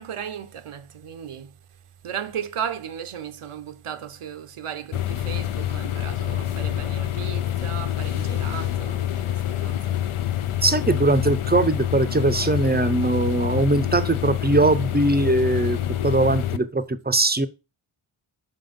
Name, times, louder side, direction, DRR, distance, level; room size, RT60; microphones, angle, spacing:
voice 1, 0.0-1.5 2.0-10.1, right 8 dB, 85° right, 0.8 m, -35 dB
sound 1, 4.9-16.6, left 12 dB, 85° left, 0.6 m, -26 dB
voice 2, 10.6-15.8 16.0-17.5, right 2 dB, 20° right, 0.5 m, -21 dB
5.6 x 3.9 x 5.2 m
wide cardioid pair, 80°, 50 cm